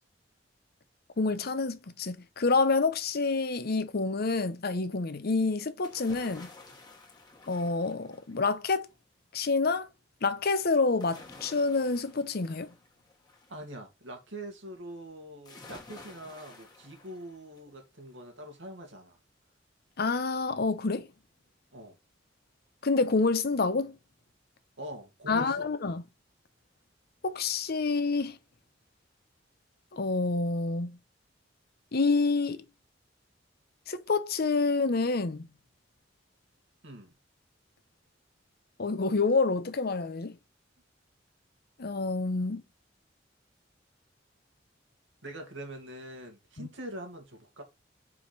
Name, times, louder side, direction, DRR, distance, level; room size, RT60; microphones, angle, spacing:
voice 1, 1.2-6.5 7.5-8.9 9.3-9.9 10.2-12.7 20.0-21.1 22.8-24.0 25.3-26.0 27.2-28.4 29.9-31.0 31.9-32.6 33.9-35.5 38.8-40.4 41.8-42.6 46.6-46.7, left 3 dB, 55° left, 0.8 m, -28 dB
sound 1, 5.8-8.6 11.0-13.6 15.4-17.7 18.1-18.2, left 3 dB, 20° left, 1.6 m, -51 dB
voice 2, 13.5-19.2 21.7-22.0 24.8-25.7 36.8-37.1 45.2-47.6, right 1 dB, 80° right, 2.2 m, -44 dB
5.0 x 4.9 x 4.2 m
head